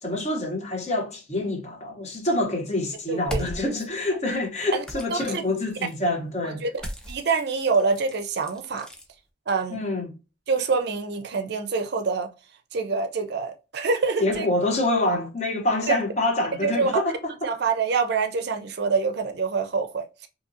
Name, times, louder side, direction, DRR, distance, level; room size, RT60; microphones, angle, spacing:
voice 1, 0.0-6.7 9.7-10.1 14.2-17.5, left 2 dB, 35° left, 0.7 m, -26 dB
voice 2, 3.1-3.4 4.7-4.8 5.1-5.4 6.4-6.7 7.1-8.9 9.5-9.8 10.5-12.3 12.7-14.5 15.9-16.0 16.6-16.9 17.4-20.3, right 4 dB, 55° right, 0.4 m, -26 dB
sound 1, 3.2-3.9 4.8-6.0 6.7-9.1, equal, 5° left, 0.4 m, -38 dB
2.7 x 2.7 x 2.5 m
head